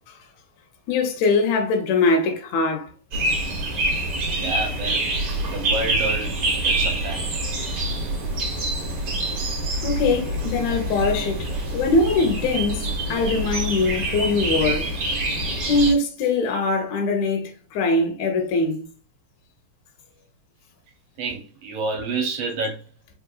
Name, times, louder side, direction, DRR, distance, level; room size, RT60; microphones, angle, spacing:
voice 1, 0.9-2.9 9.8-14.9 15.7-18.9, left 3 dB, 75° left, 2.0 m, -22 dB
sound 1, 3.1-15.9, right 1 dB, 50° right, 1.3 m, -26 dB
voice 2, 4.4-6.3 6.6-7.2 21.2-22.8, right 3 dB, 70° right, 1.7 m, -29 dB
4.8 x 3.3 x 2.3 m
omnidirectional pair, 3.5 m